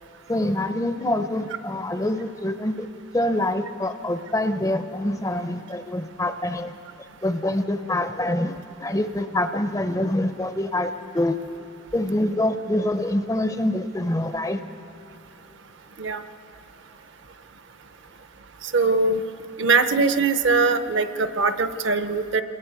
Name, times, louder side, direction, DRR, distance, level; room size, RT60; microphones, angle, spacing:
voice 1, 0.3-2.9 3.1-6.8 7.2-11.4 11.9-14.6, left 1 dB, 15° left, 9 dB, 0.5 m, -25 dB
voice 2, 18.7-19.2 19.6-22.4, right 4 dB, 55° right, 10 dB, 0.7 m, -21 dB
27.0 x 21.0 x 4.7 m, 2.9 s
head